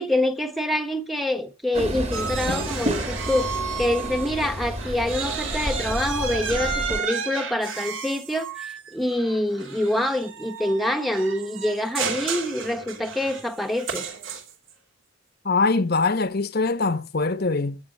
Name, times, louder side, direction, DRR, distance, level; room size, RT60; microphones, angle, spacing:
voice 1, 0.0-14.1, left 1 dB, ahead, 1.1 m, -26 dB
Train, 1.7-7.0, right 1 dB, 30° right, 2.1 m, -30 dB
sound 1, 2.1-4.5 4.8-14.7, right 6 dB, 65° right, 2.9 m, -32 dB
voice 2, 15.4-17.8, left 3 dB, 45° left, 1.0 m, -23 dB
14.5 x 8.3 x 6.4 m
head